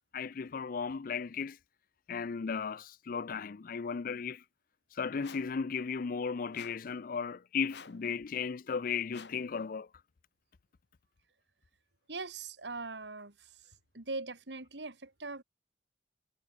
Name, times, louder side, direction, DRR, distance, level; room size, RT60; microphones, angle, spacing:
voice 1, 0.1-1.6 2.1-4.4 4.9-9.9, left 5 dB, 50° left, 0.5 m, -35 dB
sound 1, 5.2-5.6 6.5-6.9 7.7-8.1 9.1-9.5, left 5 dB, 75° left, 2.4 m, -51 dB
voice 2, 12.1-13.7 13.9-15.4, right 3 dB, 80° right, 2.7 m, -41 dB
head